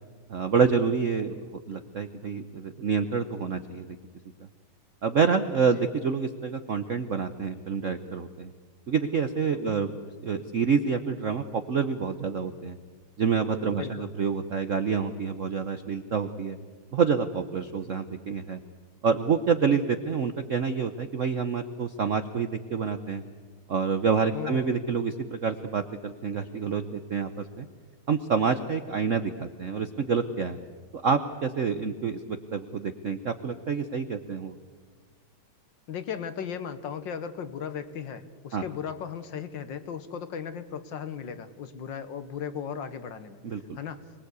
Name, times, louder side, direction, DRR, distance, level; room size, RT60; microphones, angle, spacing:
voice 1, 0.3-1.4 1.7-3.9 5.0-8.5 8.9-9.9 10.2-12.8 13.2-16.6 16.9-18.6 19.0-23.2 23.7-27.7 28.1-30.6 30.9-34.5 38.5-38.6 43.4-43.8, right 5 dB, 60° right, 9 dB, 0.8 m, -27 dB
voice 2, 24.3-24.8 35.9-43.4 43.8-44.0, left 7 dB, 60° left, 11 dB, 1.7 m, -36 dB
25.5 x 20.0 x 8.2 m, 1.5 s
omnidirectional pair, 2.4 m